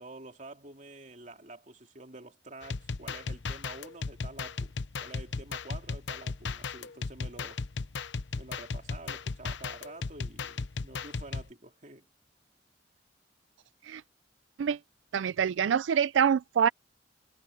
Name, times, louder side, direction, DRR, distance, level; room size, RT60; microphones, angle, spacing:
voice 1, 0.0-4.7 5.0-7.6 8.4-12.1, right 2 dB, 40° right, 2.9 m, -48 dB
sound 1, 2.6-11.5, left 4 dB, 70° left, 0.8 m, -36 dB
voice 2, 15.1-16.7, right 7 dB, 85° right, 0.4 m, -25 dB
head